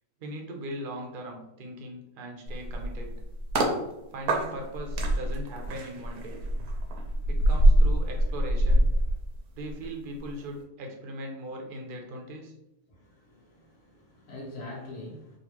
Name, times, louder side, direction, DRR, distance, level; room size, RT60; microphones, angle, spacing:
voice 1, 0.2-3.2 4.1-6.4 7.3-8.9 9.5-12.5, right 1 dB, 55° right, 1 dB, 0.6 m, -39 dB
sound 1, 2.5-3.8 4.3-9.9 10.2-10.4, right 1 dB, 80° right, 1.2 m, -24 dB
voice 2, 12.9-15.4, left 2 dB, 85° left, -4 dB, 1.6 m, -44 dB
3.9 x 2.4 x 2.9 m, 0.89 s
omnidirectional pair, 1.6 m